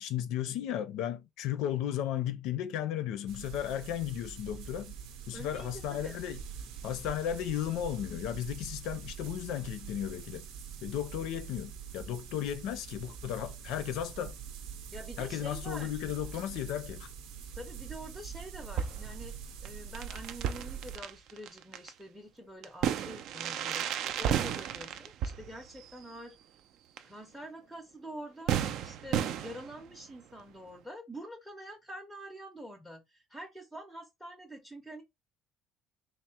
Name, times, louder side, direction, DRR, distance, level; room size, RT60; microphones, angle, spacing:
voice 1, 0.0-4.9 5.3-6.4 6.8-10.4 10.8-14.3 15.2-17.1, left 11 dB, 70° left, 0.5 m, -35 dB
sound 1, 3.3-21.0, right 7 dB, 90° right, 0.7 m, -44 dB
voice 2, 5.3-6.2 14.9-16.0 17.5-26.3 27.0-35.0, equal, ahead, 0.6 m, -46 dB
sound 2, 18.8-19.2 19.6-19.7 19.9-21.9 22.6-26.1 27.0-27.1 27.4-27.5 28.5-30.0, right 9 dB, 55° right, 0.4 m, -33 dB
3.6 x 2.1 x 4.2 m
cardioid pair, 175°, 0 cm